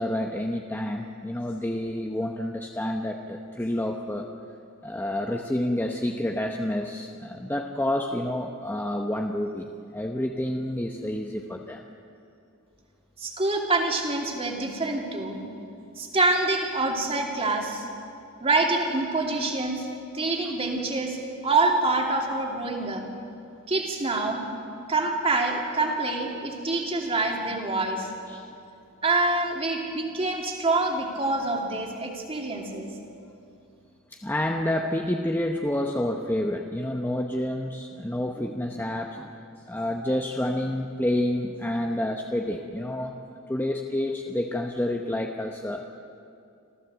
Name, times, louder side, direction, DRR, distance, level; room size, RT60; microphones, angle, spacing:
voice 1, 0.0-4.3 4.8-11.8 28.3-28.5 34.1-39.4 39.7-43.2 43.5-45.9, left 1 dB, 10° left, 2 dB, 0.9 m, -29 dB
voice 2, 13.2-15.4 16.0-17.8 18.4-19.9 20.1-21.2 21.4-23.0 23.7-24.4 24.9-28.1 29.0-32.9, right 2 dB, 25° right, 1 dB, 2.7 m, -26 dB
26.5 x 15.0 x 7.9 m, 2.6 s
head